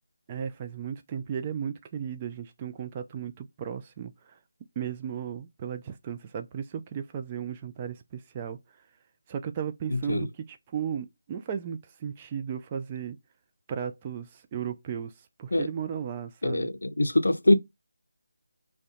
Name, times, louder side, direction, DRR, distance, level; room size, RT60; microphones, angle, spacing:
voice 1, 0.3-4.4 4.8-8.6 9.3-13.2 13.7-15.1 15.4-16.7, right 8 dB, 20° right, 0.3 m, -35 dB
voice 2, 9.9-10.3 15.5-15.7 16.4-17.5, left 1 dB, 75° left, 0.5 m, -23 dB
2.7 x 2.1 x 2.5 m
figure-of-eight pair, 160°, 0 cm